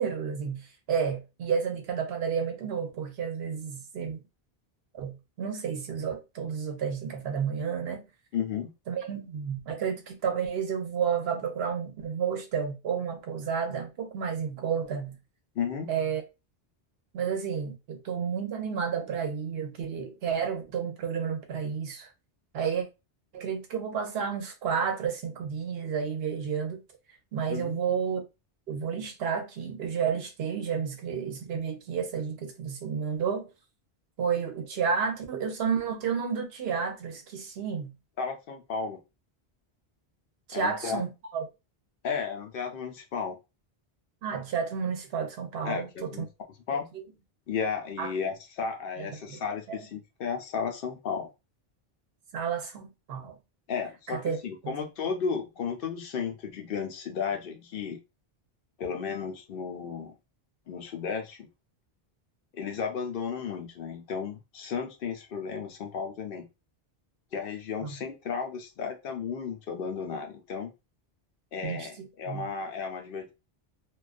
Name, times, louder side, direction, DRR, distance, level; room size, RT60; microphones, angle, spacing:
voice 1, 0.0-4.2 4.9-8.0 8.9-15.1 15.9-16.2 17.1-22.1 22.5-22.9 23.3-26.8 27.3-28.2 28.7-33.5 34.2-37.9 40.5-41.4 44.2-46.3 46.9-47.0 48.0-48.1 49.0-49.4 49.7-49.8 52.3-53.3 54.1-54.4 54.6-54.7 67.8-68.0 71.6-72.5, right 7 dB, 75° right, 0.8 m, -31 dB
voice 2, 8.3-8.7 15.5-15.9 27.5-27.8 38.2-39.0 40.5-41.0 42.0-43.4 45.7-46.3 46.7-46.9 47.5-51.3 53.7-58.0 58.8-60.1 60.7-61.5 62.5-66.5 67.3-70.7 71.5-73.3, left 6 dB, 65° left, 0.7 m, -34 dB
2.3 x 2.3 x 2.4 m
omnidirectional pair, 1.0 m